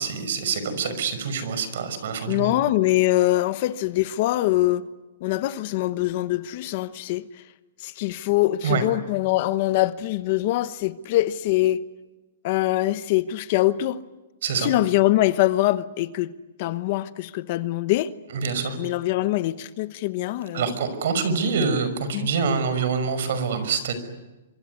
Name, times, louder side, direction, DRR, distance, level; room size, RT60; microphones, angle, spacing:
voice 1, 0.0-2.5 8.6-8.8 14.4-14.7 18.3-18.8 20.5-23.9, right 5 dB, 60° right, 5.7 m, -25 dB
voice 2, 2.3-4.9 5.2-7.4 7.8-11.8 12.4-14.0 14.6-16.3 16.6-18.1 18.8-20.7 22.1-22.3, left 16 dB, 40° left, 1.1 m, -23 dB
25.5 x 25.0 x 9.5 m
hypercardioid pair, 160°, 0 cm